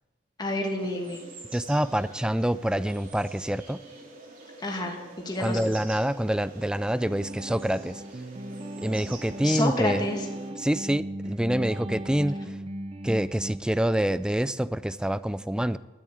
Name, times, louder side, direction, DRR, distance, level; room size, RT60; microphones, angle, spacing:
voice 1, 0.4-1.2 4.6-5.0 5.2-5.6 9.4-10.3, left 1 dB, 20° left, 1 dB, 2.2 m, -28 dB
sound 1, 0.8-10.5, right 2 dB, 50° right, 2.9 m, -46 dB
voice 2, 1.5-3.8 5.4-8.0 8.8-10.0 10.6-12.4 13.0-15.8, right 1 dB, 5° right, 16 dB, 0.3 m, -26 dB
sound 2, 7.0-13.6, right 1 dB, 30° right, 0.7 m, -37 dB
12.5 x 8.6 x 8.5 m, 1.1 s
head